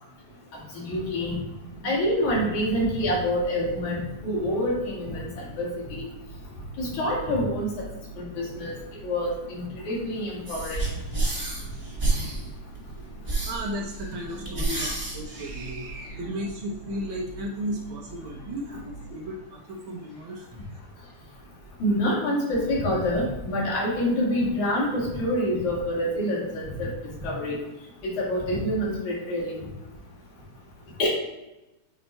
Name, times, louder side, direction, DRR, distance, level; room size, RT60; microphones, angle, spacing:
voice 1, 0.7-1.4 1.8-6.1 6.8-7.8 8.2-8.7 9.0-10.8 21.8-26.9 27.2-27.6 28.0-29.6 31.0-31.1, equal, 80° left, -5 dB, 3.3 m, -27 dB
sound 1, 1.3-19.3, right 2 dB, 60° left, 2.4 m, -45 dB
sound 2, 10.4-16.1, right 2 dB, 15° right, 1.2 m, -30 dB
voice 2, 13.5-20.8, equal, 75° right, -2 dB, 1.1 m, -35 dB
7.4 x 2.9 x 4.4 m, 0.98 s
omnidirectional pair, 3.3 m